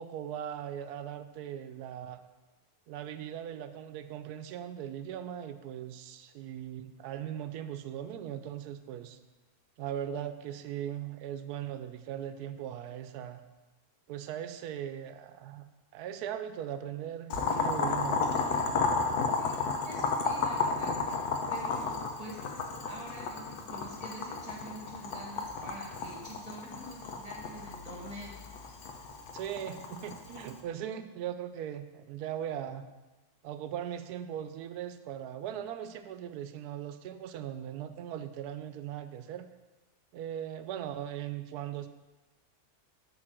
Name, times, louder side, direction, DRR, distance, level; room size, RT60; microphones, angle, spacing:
voice 1, 0.0-2.2 2.9-9.2 9.8-13.4 14.1-15.6 15.9-18.2 29.3-32.9 33.4-39.5 40.1-41.9, right 10 dB, 85° right, 11 dB, 1.1 m, -39 dB
Boiling, 17.3-30.6, left 4 dB, 90° left, 1.3 m, -33 dB
voice 2, 19.8-28.4, right 1 dB, 30° right, -2 dB, 1.1 m, -46 dB
7.7 x 3.9 x 6.1 m, 1.1 s
omnidirectional pair, 1.6 m